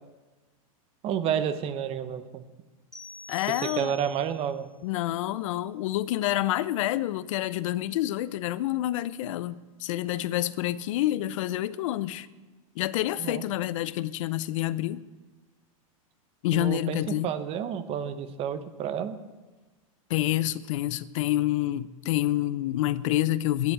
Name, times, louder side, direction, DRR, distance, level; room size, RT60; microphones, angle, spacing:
voice 1, 1.0-2.4 3.6-4.7 13.2-13.4 16.5-19.2, right 8 dB, 35° right, 0.9 m, -30 dB
sound 1, 2.9-4.4, left 1 dB, 5° left, 1.5 m, -44 dB
voice 2, 3.3-4.0 4.8-12.3 12.8-15.0 16.4-17.3 20.1-23.7, left 14 dB, 60° left, 0.6 m, -28 dB
10.5 x 8.2 x 9.9 m
supercardioid pair, 135°, 18 cm